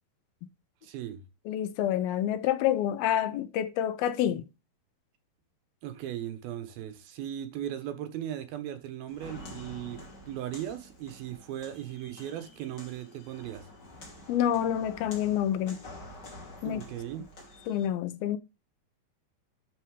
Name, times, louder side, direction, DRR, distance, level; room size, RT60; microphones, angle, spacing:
voice 1, 0.8-1.2 5.8-13.7 16.6-17.2, right 11 dB, 75° right, 2.9 m, -38 dB
voice 2, 1.5-4.4 14.3-15.8 16.6-16.8 17.7-18.4, left 10 dB, 80° left, 2.5 m, -28 dB
Walk footsteps, 9.1-17.9, left 1 dB, 30° left, 3.0 m, -48 dB
11.5 x 4.5 x 4.8 m
omnidirectional pair, 4.5 m